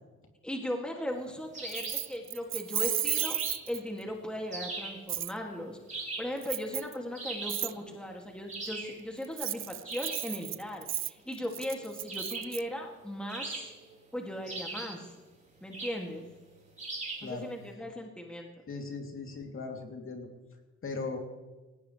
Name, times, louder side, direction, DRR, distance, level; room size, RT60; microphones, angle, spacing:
voice 1, 0.4-3.4 3.7-13.7 14.1-15.1 15.6-16.3 17.2-18.5, equal, 5° left, 1 dB, 2.4 m, -38 dB
sound 1, 1.5-2.1 3.1-3.7 4.5-5.0 5.9-6.4 7.1-7.7 8.5-9.0 9.8-10.3 12.1-12.6 13.3-14.0 14.5-15.0 15.7-16.1 16.8-17.3, right 3 dB, 25° right, 4.6 m, -39 dB
Keys jangling, 1.7-4.0 5.1-5.3 6.4-6.9 7.5-7.7 9.2-12.6, right 11 dB, 45° right, 0.4 m, -34 dB
voice 2, 17.2-17.5 18.7-20.3 20.8-21.2, left 4 dB, 45° left, 2 dB, 3.1 m, -38 dB
18.5 x 17.5 x 3.3 m, 1.2 s
cardioid pair, 90°, 30 cm